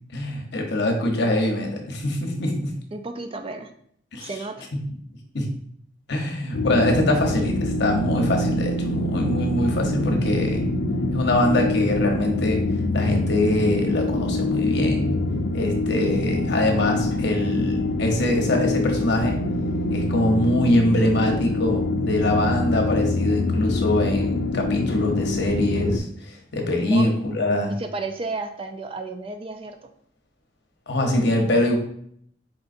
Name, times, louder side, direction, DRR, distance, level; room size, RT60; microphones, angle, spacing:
voice 1, 0.1-2.7 4.1-4.3 5.3-5.5 6.1-10.7 11.1-12.6 12.9-15.2 15.5-19.4 19.9-27.7 30.9-31.8, left 1 dB, 65° left, 2 dB, 0.8 m, -23 dB
voice 2, 2.9-3.7 4.2-4.7 26.9-27.2 27.8-29.8, right 3 dB, 30° right, 7 dB, 0.3 m, -32 dB
sound 1, 6.5-26.0, left 2 dB, 85° left, 0.4 m, -25 dB
4.4 x 3.8 x 2.5 m, 0.66 s
head